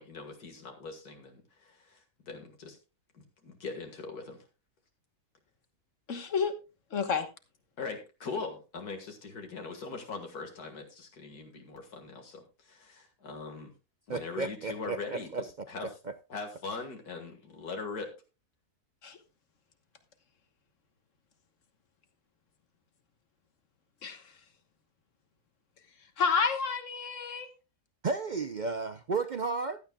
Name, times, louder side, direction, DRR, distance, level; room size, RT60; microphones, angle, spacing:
voice 1, 0.0-2.8 3.1-4.4 7.8-13.7 14.1-15.9 16.3-18.1, left 4 dB, 85° left, 2.3 m, -41 dB
voice 2, 6.1-6.5 6.9-7.3 19.0-19.2 24.0-24.3 26.2-27.5, left 5 dB, 55° left, 1.6 m, -30 dB
voice 3, 14.1-15.7 28.0-29.8, right 4 dB, 65° right, 0.4 m, -33 dB
15.5 x 12.0 x 2.3 m
omnidirectional pair, 1.6 m